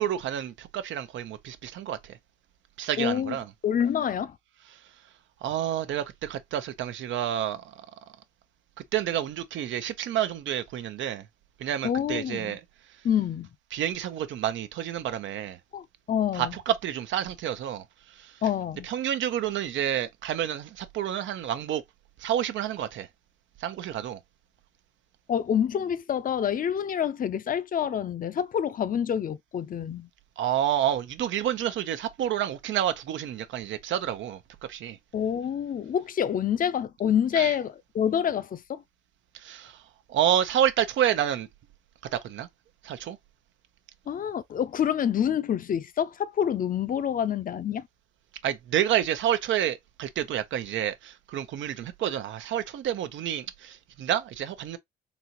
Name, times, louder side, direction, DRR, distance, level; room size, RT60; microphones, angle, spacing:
voice 1, 0.0-2.2 2.8-3.5 5.4-7.7 8.9-11.3 11.6-12.6 13.7-15.6 16.3-17.8 18.2-18.3 18.8-21.8 22.2-23.1 23.6-24.2 30.4-34.4 34.7-35.0 37.4-37.5 39.3-39.8 40.1-41.5 42.1-42.5 42.8-43.2 48.4-54.8, right 10 dB, 75° right, 0.6 m, -29 dB
voice 2, 3.0-3.4 3.6-4.4 11.8-12.6 13.0-13.5 15.7-16.5 18.4-18.9 25.3-30.1 35.1-38.8 44.1-47.8, left 9 dB, 45° left, 0.5 m, -27 dB
4.0 x 2.9 x 2.9 m
cardioid pair, 90°, 20 cm